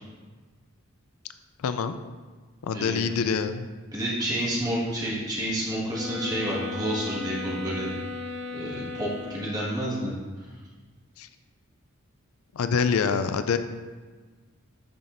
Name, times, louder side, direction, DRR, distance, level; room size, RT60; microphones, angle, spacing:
voice 1, 1.6-2.0 2.6-3.7 11.2-11.3 12.5-13.6, left 6 dB, 80° left, 10 dB, 0.4 m, -25 dB
voice 2, 2.7-3.2 3.9-7.9 8.5-10.1, right 1 dB, 15° right, -6 dB, 1.7 m, -29 dB
sound 1, 5.9-9.8, left 3 dB, 50° right, 0.9 m, -36 dB
8.9 x 5.8 x 2.6 m, 1.4 s
head